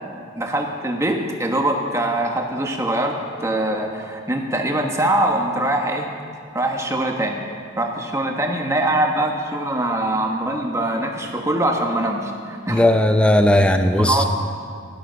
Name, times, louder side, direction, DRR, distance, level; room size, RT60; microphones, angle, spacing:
voice 1, 0.3-6.1 6.5-7.4 7.8-12.8 13.6-13.7 14.0-14.3, right 1 dB, 15° right, 2 dB, 1.3 m, -23 dB
voice 2, 12.7-14.3, left 1 dB, 5° left, 7 dB, 0.5 m, -16 dB
15.5 x 12.0 x 6.3 m, 2.2 s
head